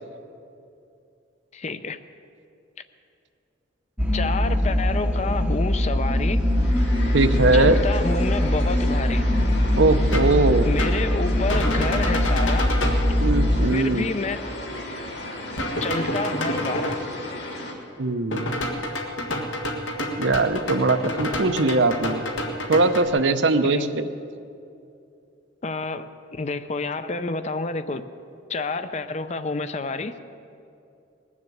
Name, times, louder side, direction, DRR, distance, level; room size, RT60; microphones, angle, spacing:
voice 1, 1.5-2.0 4.1-6.5 7.5-9.3 10.6-12.8 13.7-14.4 15.8-17.0 23.6-23.9 25.6-28.0 28.5-30.2, left 3 dB, 35° left, 0.5 m, -29 dB
sound 1, 4.0-13.7, left 1 dB, 5° right, 0.7 m, -22 dB
sound 2, 6.3-17.7, left 1 dB, 60° left, 2.3 m, -35 dB
voice 2, 7.1-7.8 9.7-10.7 13.2-14.1 18.0-18.7 20.2-22.2 22.7-24.1, right 3 dB, 75° right, 0.7 m, -21 dB
sound 3, 10.1-10.4 10.8-11.0 11.5-13.1 15.6-16.9 18.3-23.1, left 1 dB, 85° left, 1.7 m, -29 dB
20.0 x 7.3 x 8.0 m
head